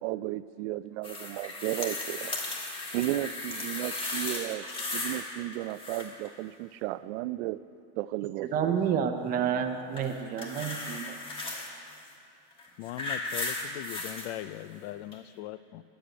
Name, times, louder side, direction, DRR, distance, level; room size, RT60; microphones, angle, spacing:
voice 1, 0.0-2.4 2.9-4.7 4.9-7.6 8.0-9.0, right 16 dB, 80° right, 16 dB, 0.5 m, -34 dB
sound 1, 1.0-5.3 5.5-6.3 9.9-11.7 12.5-14.3 15.1-15.2, left 2 dB, 15° left, 1.3 m, -36 dB
voice 2, 8.5-11.2 11.5-11.6, right 7 dB, 25° right, 7 dB, 0.6 m, -29 dB
voice 3, 12.8-15.8, left 14 dB, 70° left, 16 dB, 0.5 m, -40 dB
9.9 x 7.9 x 9.0 m, 2.8 s
cardioid pair, 175°, 33 cm